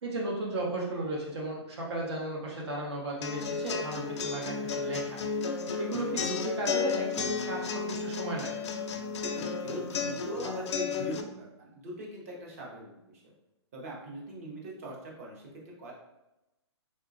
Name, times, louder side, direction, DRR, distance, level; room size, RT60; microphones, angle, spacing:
voice 1, 0.0-5.2 5.5-8.7, right 2 dB, 65° right, -2 dB, 0.8 m, -35 dB
sound 1, 3.2-11.2, left 5 dB, 75° left, 0.4 m, -33 dB
voice 2, 9.2-13.3 13.7-15.9, right 1 dB, 30° right, -3 dB, 0.6 m, -41 dB
3.8 x 2.2 x 2.5 m, 0.94 s
hypercardioid pair, 175°, 15 cm